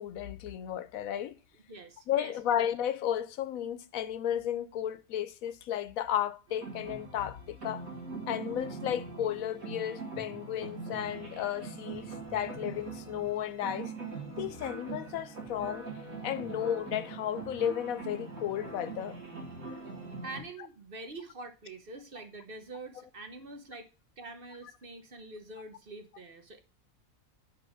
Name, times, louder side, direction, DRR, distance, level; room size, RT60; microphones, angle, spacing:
voice 1, 0.0-1.4 2.1-7.9 8.3-13.9 14.4-15.9 16.2-19.2, left 10 dB, 80° left, 1.1 m, -33 dB
voice 2, 1.7-2.4 20.2-23.9 24.2-26.6, right 2 dB, 45° right, 1.0 m, -45 dB
sound 1, 6.5-20.4, right 3 dB, 80° right, 2.6 m, -42 dB
5.4 x 4.8 x 6.3 m
omnidirectional pair, 1.5 m